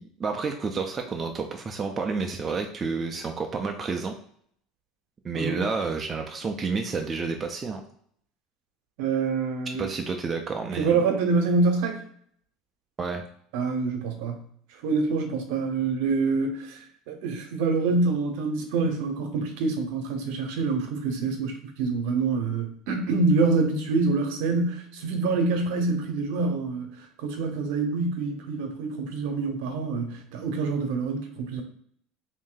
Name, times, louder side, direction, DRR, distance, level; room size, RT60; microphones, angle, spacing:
voice 1, 0.0-4.2 5.2-7.8 9.8-11.0 13.0-13.2, right 4 dB, 15° right, 3 dB, 0.3 m, -30 dB
voice 2, 9.0-9.9 10.8-12.0 13.5-14.4 14.8-31.6, right 4 dB, 65° right, 5 dB, 0.7 m, -26 dB
3.0 x 2.6 x 3.8 m, 0.64 s
cardioid pair, 175°, 0 cm